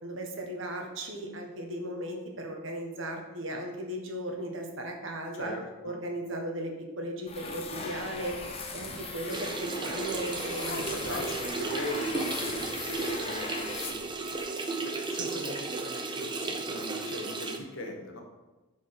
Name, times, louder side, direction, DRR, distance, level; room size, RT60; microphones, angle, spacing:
voice 1, 0.0-5.5 5.8-8.4 8.7-11.2, right 1 dB, 60° right, 2 dB, 1.4 m, -36 dB
voice 2, 5.3-6.0 9.3-9.4 10.7-14.3 14.8-18.2, left 1 dB, 60° left, 2 dB, 1.5 m, -40 dB
sound 1, 7.3-14.4, left 3 dB, 25° left, 0.9 m, -38 dB
sound 2, 9.3-17.6, right 3 dB, 20° right, 0.6 m, -34 dB
7.9 x 4.8 x 5.9 m, 1.1 s
head